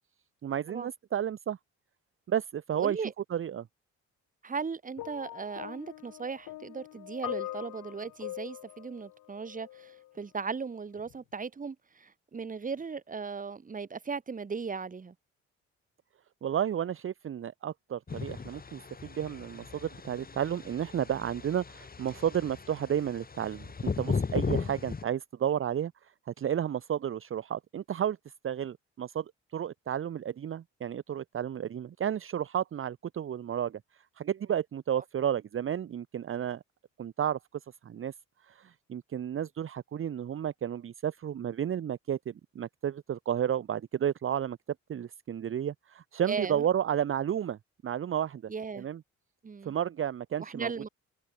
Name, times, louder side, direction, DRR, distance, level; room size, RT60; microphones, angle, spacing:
voice 1, 0.4-1.6 2.3-3.0 3.3-3.7 16.4-28.2 28.4-36.6 37.0-37.4 37.8-38.1 38.4-44.6 44.9-48.5 48.8-49.0 49.6-50.9, right 9 dB, 45° right, 0.9 m, -32 dB
voice 2, 2.7-3.1 4.4-15.1 24.6-24.8 46.3-46.6 48.5-48.9 49.4-49.7 50.4-50.9, right 5 dB, 25° right, 1.4 m, -37 dB
sound 1, 5.0-10.1 11.0-11.2, left 15 dB, 90° left, 5.5 m, -42 dB
sound 2, 18.1-25.0, left 5 dB, 30° left, 2.5 m, -36 dB
cardioid pair, 90°, 30 cm